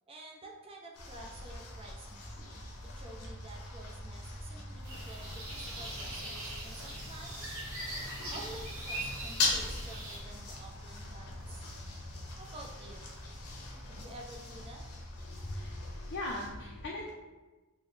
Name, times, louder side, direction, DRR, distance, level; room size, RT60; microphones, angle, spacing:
voice 1, 0.1-2.3 2.8-7.5 8.3-11.7 12.4-13.1 13.9-14.8, right 2 dB, 25° right, 0 dB, 0.5 m, -50 dB
sound 1, 0.9-16.5, left 2 dB, 90° left, 0.8 m, -41 dB
sound 2, 4.8-10.2, right 1 dB, 65° right, 1.0 m, -41 dB
voice 2, 15.2-17.1, left 1 dB, 50° left, -2 dB, 0.4 m, -39 dB
3.9 x 2.1 x 3.1 m, 1.2 s
head